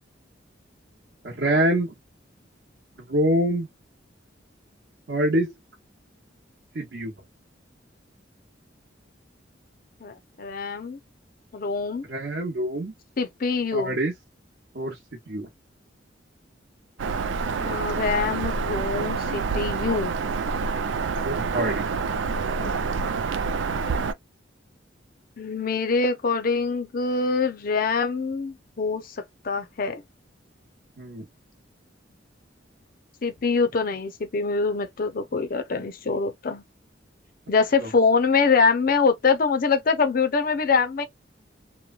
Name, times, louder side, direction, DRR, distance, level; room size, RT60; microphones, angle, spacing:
voice 1, 1.2-1.9 3.1-3.7 5.1-5.5 6.7-7.1 12.1-12.9 13.7-14.1 14.7-15.0 15.3-15.5 21.2-21.9 31.0-31.3 37.8-37.9, right 1 dB, 60° right, 0.9 m, -25 dB
voice 2, 10.0-11.0 11.5-12.1 13.2-14.0 17.6-20.2 22.6-22.8 23.0-23.2 25.4-29.2 29.4-30.0 33.2-36.6 37.5-41.0, left 4 dB, 50° left, 0.5 m, -24 dB
Bird vocalization bird call bird song, 17.0-24.1, right 5 dB, 75° right, 0.4 m, -27 dB
3.0 x 2.1 x 2.3 m
head